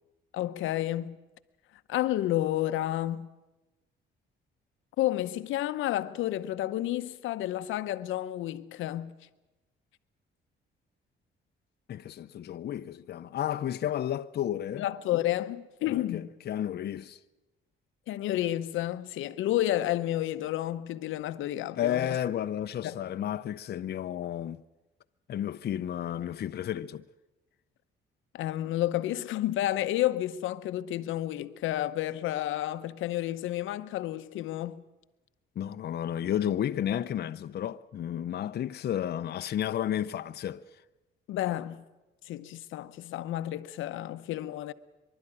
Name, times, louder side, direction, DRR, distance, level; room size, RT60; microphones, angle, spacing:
voice 1, 0.3-1.2 1.9-3.3 5.0-9.1 14.8-16.3 18.1-22.1 22.8-23.0 28.3-34.8 41.3-41.8 42.2-44.7, left 14 dB, 90° left, 0.8 m, -31 dB
voice 2, 11.9-14.8 15.9-17.2 21.8-24.6 25.3-27.0 35.6-40.6, left 10 dB, 55° left, 0.6 m, -32 dB
24.0 x 12.0 x 9.9 m
cardioid pair, 90°, 20 cm